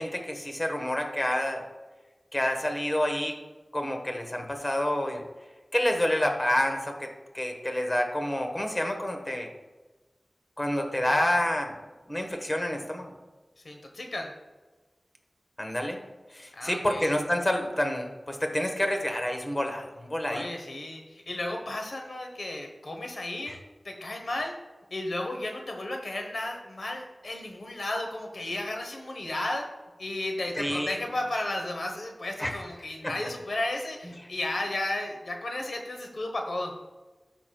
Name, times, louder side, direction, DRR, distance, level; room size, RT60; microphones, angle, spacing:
voice 1, 0.0-1.7 2.3-3.4 3.7-5.3 5.7-7.1 7.3-9.5 10.6-11.8 12.1-13.1 15.6-16.0 16.3-20.4 23.5-23.6 30.6-31.0 32.4-32.6 33.0-33.1, left 1 dB, 25° left, 4 dB, 1.3 m, -28 dB
voice 2, 13.6-14.3 16.5-17.1 20.3-23.5 23.8-24.5 24.9-29.7 30.0-36.7, left 1 dB, 75° left, 3 dB, 1.0 m, -33 dB
13.5 x 5.9 x 2.3 m, 1.2 s
wide cardioid pair, 75°, 0 cm